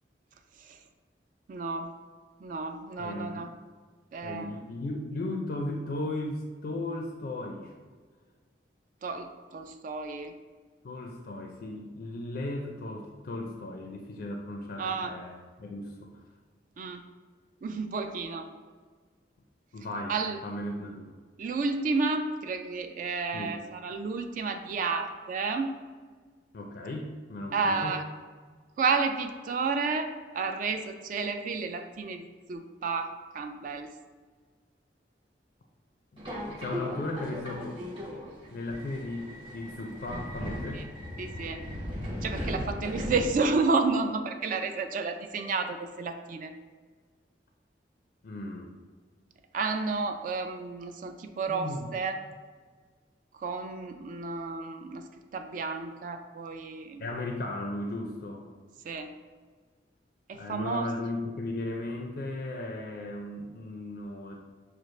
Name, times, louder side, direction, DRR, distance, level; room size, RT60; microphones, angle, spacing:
voice 1, 1.5-1.9 2.4-3.5 4.1-4.5 9.0-10.3 14.8-15.1 16.8-17.0 17.6-18.5 20.1-20.4 21.4-25.7 27.5-28.0 28.8-33.9 40.7-40.8 41.2-41.6 42.2-46.5 49.5-52.2 53.4-55.0 55.3-57.0 58.9-59.1 60.3-60.9, right 4 dB, 50° right, 6 dB, 0.3 m, -31 dB
voice 2, 3.0-3.5 4.2-7.7 10.8-16.1 19.7-20.2 20.4-21.1 23.3-23.6 26.5-28.0 36.1-36.2 36.5-37.8 38.5-40.9 48.2-48.7 51.5-51.9 57.0-58.5 60.3-64.4, left 2 dB, 60° left, 2 dB, 0.4 m, -36 dB
Subway metro underground, 36.2-43.7, left 1 dB, 30° right, 1.1 m, -37 dB
6.1 x 2.4 x 3.1 m, 1.5 s
head